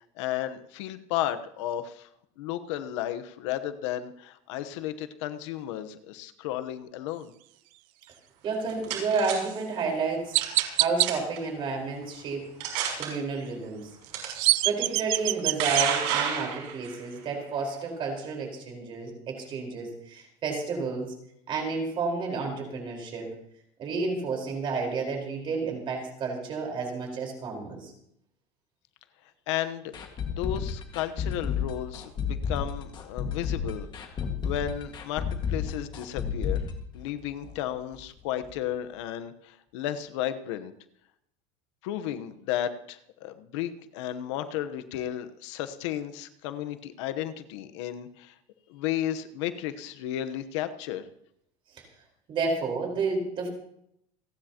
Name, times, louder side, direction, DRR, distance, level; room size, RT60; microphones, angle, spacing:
voice 1, 0.0-2.1 2.4-7.3 29.5-29.9 30.4-36.7 36.9-40.7 41.8-48.3 48.7-51.1, left 11 dB, 90° left, 10 dB, 1.1 m, -33 dB
voice 2, 8.4-10.4 10.8-12.5 13.0-13.9 14.6-21.1 21.5-23.3 23.8-27.9 52.3-53.5, right 4 dB, 35° right, 1 dB, 4.5 m, -31 dB
sound 1, 8.4-9.3 10.4-10.7 11.0-11.4 12.0-12.1 12.6-13.1 14.1-14.3 15.2-16.9, right 9 dB, 85° right, 5.9 m, -29 dB
Chirp tweet, 9.4-9.6 10.3-11.1 14.0-15.9, right 21 dB, 60° right, 0.5 m, -24 dB
sound 2, 29.9-37.7 37.9-38.0 38.4-38.5, left 6 dB, 30° left, 1.9 m, -31 dB
29.0 x 10.0 x 3.0 m, 0.74 s
cardioid pair, 155°, 15 cm